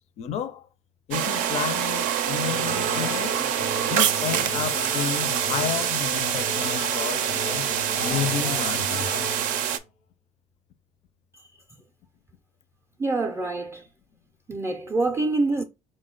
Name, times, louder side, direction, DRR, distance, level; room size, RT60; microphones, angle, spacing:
voice 1, 0.2-0.7 1.1-3.4 3.9-7.7 8.0-9.3, left 9 dB, 55° left, 0.4 m, -31 dB
sound 1, 1.1-9.8, right 10 dB, 85° right, 0.5 m, -26 dB
sound 2, 2.4-9.8, left 3 dB, 90° left, 0.8 m, -35 dB
voice 2, 13.0-13.9 14.5-15.6, right 3 dB, 20° right, 0.4 m, -26 dB
4.1 x 2.1 x 3.7 m
cardioid pair, 120°, 13 cm